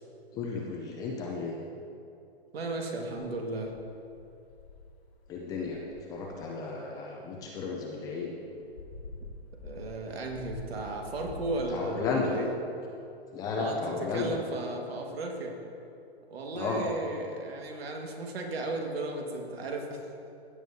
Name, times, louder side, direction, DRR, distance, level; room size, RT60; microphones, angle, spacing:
voice 1, 0.3-1.6 5.3-5.8 6.1-8.3 11.7-12.4 13.3-14.3 16.5-16.8, left 4 dB, 10° left, -1 dB, 0.4 m, -33 dB
voice 2, 2.5-3.7 9.6-12.5 13.5-15.6 16.3-20.0, right 2 dB, 70° right, 1 dB, 1.8 m, -35 dB
sound 1, 3.2-4.9 5.2-5.3 5.6-6.4 8.5-12.1, left 2 dB, 70° left, 1.7 m, -46 dB
15.5 x 7.7 x 2.8 m, 2.6 s
hypercardioid pair, 145°, 32 cm